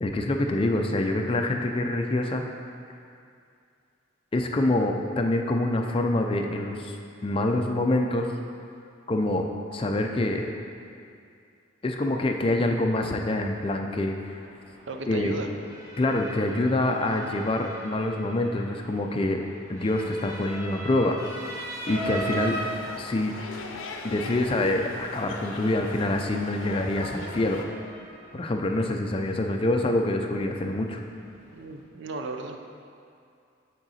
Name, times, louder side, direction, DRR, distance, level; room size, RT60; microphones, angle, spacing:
voice 1, 0.0-2.4 4.3-6.9 7.2-8.3 9.1-9.4 9.7-10.5 11.8-14.4 15.1-15.4 16.0-19.4 19.7-21.1 21.9-22.6 23.0-23.3 24.0-27.6 28.3-31.0, left 1 dB, 25° left, 3 dB, 0.4 m, -26 dB
Motor vehicle (road) / Siren, 14.4-31.8, right 1 dB, 35° right, 1.4 m, -41 dB
voice 2, 14.9-15.5 31.5-32.6, right 2 dB, 65° right, 5 dB, 0.5 m, -35 dB
sound 1, 21.9-27.6, left 3 dB, 70° left, 0.6 m, -39 dB
8.8 x 3.8 x 4.2 m, 2.4 s
head